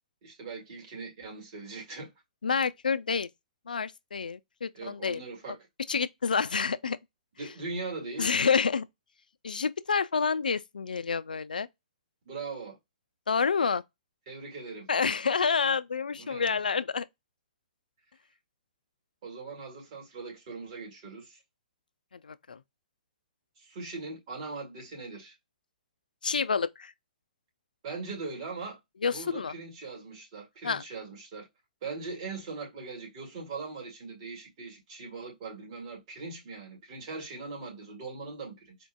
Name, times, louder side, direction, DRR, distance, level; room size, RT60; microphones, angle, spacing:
voice 1, 0.2-2.1 4.7-5.6 7.4-8.3 12.3-12.8 14.3-14.9 16.1-16.5 19.2-21.4 23.6-25.4 27.8-28.8 29.1-31.5 31.8-38.8, right 4 dB, 50° right, 2.0 m, -40 dB
voice 2, 2.4-3.3 3.7-5.2 5.9-7.0 8.2-8.9 9.4-11.7 13.3-13.8 14.9-17.1 22.2-22.6 26.2-26.9 29.0-29.5 30.6-30.8, left 5 dB, 85° left, 0.3 m, -28 dB
4.3 x 2.5 x 2.2 m
hypercardioid pair, 125°, 4 cm